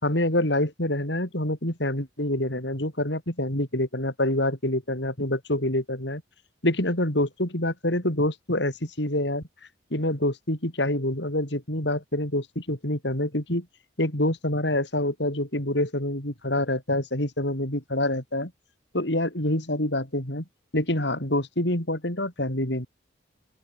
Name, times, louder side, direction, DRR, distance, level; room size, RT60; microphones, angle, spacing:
voice 1, 0.0-6.2 6.6-9.4 9.9-13.6 14.0-18.5 18.9-20.4 20.7-22.9, left 1 dB, 65° left, 5.2 m, -26 dB
open air
head